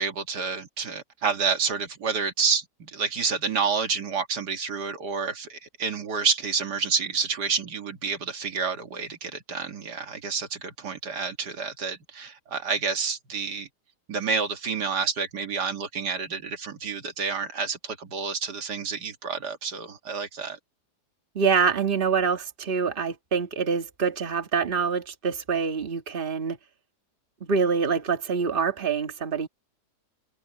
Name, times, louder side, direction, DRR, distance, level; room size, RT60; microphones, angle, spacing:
voice 1, 0.0-13.7 14.1-20.6, right 5 dB, 75° right, 2.3 m, -29 dB
voice 2, 21.4-26.6 27.4-29.5, right 6 dB, 35° right, 1.8 m, -25 dB
omnidirectional pair, 1.8 m